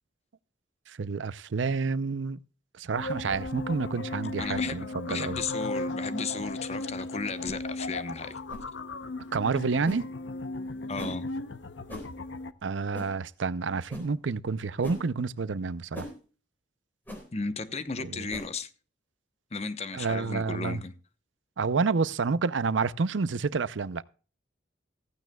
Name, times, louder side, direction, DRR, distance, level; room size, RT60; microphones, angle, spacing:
voice 1, 0.9-2.4 2.8-5.4 9.3-10.0 12.6-16.1 18.1-18.3 19.9-20.8 21.6-24.0, right 4 dB, 80° right, 0.6 m, -29 dB
sound 1, 3.0-12.5, left 2 dB, 80° left, 0.8 m, -36 dB
sound 2, 3.3-3.5 4.4-4.6 5.2-5.4 6.3-6.5 7.4-7.6 8.5-8.7 9.8-10.0 11.0-11.2 11.9-12.1 12.9-13.1 13.9-14.1 14.8-15.0 15.9-16.1 17.1-17.2 18.3-18.5, left 1 dB, 10° left, 3.9 m, -40 dB
voice 2, 4.4-8.4 10.9-11.3 17.3-18.7 19.5-20.9, left 4 dB, 35° left, 0.9 m, -35 dB
15.5 x 15.0 x 2.3 m
head